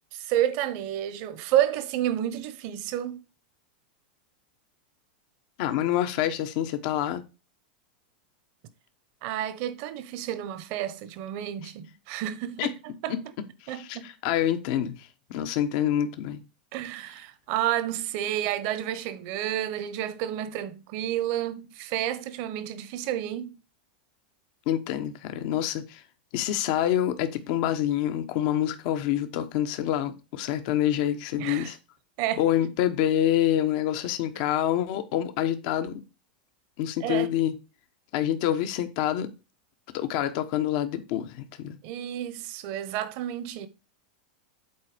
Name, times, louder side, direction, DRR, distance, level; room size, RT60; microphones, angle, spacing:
voice 1, 0.1-3.2 9.2-12.7 13.0-13.1 13.7-14.1 16.7-23.5 31.4-31.7 32.2-32.4 37.0-37.3 41.8-43.7, right 12 dB, 55° right, 1.1 m, -30 dB
voice 2, 5.6-7.2 12.6-12.7 13.1-13.2 13.6-16.4 24.7-26.0 26.3-31.8 32.4-36.0 36.8-37.5 38.1-39.3 39.9-41.8, left 11 dB, 55° left, 1.1 m, -27 dB
8.3 x 4.2 x 5.1 m
hypercardioid pair, 125°, 5 cm